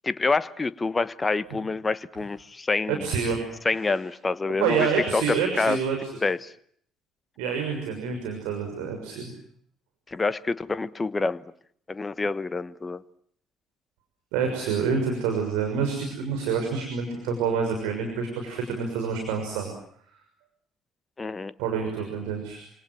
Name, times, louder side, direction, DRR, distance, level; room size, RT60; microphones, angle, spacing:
voice 1, 0.0-3.1 3.6-5.8 6.2-6.5 10.1-11.4 11.9-13.0 21.2-21.5, left 3 dB, 25° left, 17 dB, 1.2 m, -27 dB
voice 2, 2.9-3.4 4.6-6.1 7.4-9.3 14.3-19.7 21.6-22.6, right 6 dB, 65° right, 3 dB, 6.4 m, -27 dB
28.5 x 27.0 x 7.6 m, 0.66 s
figure-of-eight pair, 50°, 0 cm